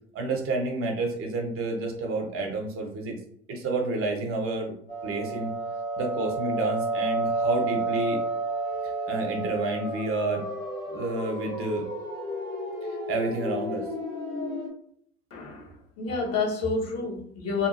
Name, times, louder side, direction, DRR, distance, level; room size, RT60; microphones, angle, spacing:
voice 1, 0.1-3.2 3.5-4.7 5.0-5.5 6.0-8.2 8.8-10.5 10.9-11.9 12.9-13.9, right 2 dB, 40° right, 1 dB, 0.9 m, -29 dB
sound 1, 4.9-14.7, right 2 dB, 80° left, 1.4 m, -31 dB
voice 2, 15.3-17.7, left 4 dB, 45° left, -2 dB, 1.3 m, -29 dB
2.8 x 2.6 x 2.6 m, 0.66 s
hypercardioid pair, 70°, 35 cm